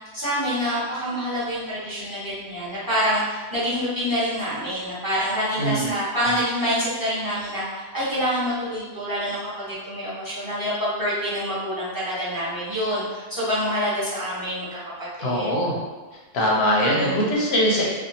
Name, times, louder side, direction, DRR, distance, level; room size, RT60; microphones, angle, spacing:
voice 1, 0.1-14.8 15.2-15.6 16.7-17.3, equal, 20° right, -10 dB, 0.8 m, -26 dB
voice 2, 5.6-5.9 15.2-15.8 16.3-17.9, equal, 70° left, -3 dB, 0.8 m, -21 dB
2.6 x 2.3 x 2.7 m, 1.3 s
omnidirectional pair, 1.2 m